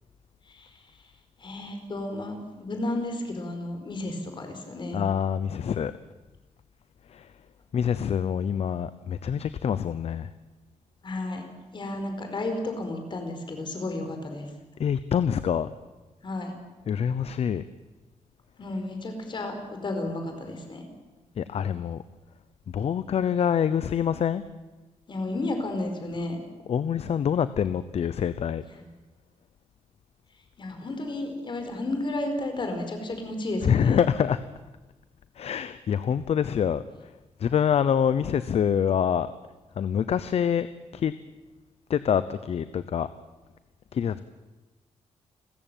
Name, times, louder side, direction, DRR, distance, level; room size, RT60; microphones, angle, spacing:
voice 1, 0.5-0.8 1.4-5.1 11.0-11.4 11.7-14.5 16.2-16.5 18.6-20.8 25.1-26.4 28.7-28.8 30.6-34.0, left 2 dB, 40° left, 5 dB, 4.7 m, -32 dB
voice 2, 4.9-5.9 7.1-7.3 7.7-10.3 14.8-15.7 16.9-17.6 21.4-22.0 22.7-24.4 26.7-28.6 33.6-34.4 35.4-36.8 37.4-39.3 39.8-40.7 40.9-41.1 41.9-43.1 43.9-44.2, left 8 dB, 55° left, 14 dB, 0.8 m, -25 dB
30.0 x 14.5 x 9.1 m, 1.1 s
wide cardioid pair, 155°, 12 cm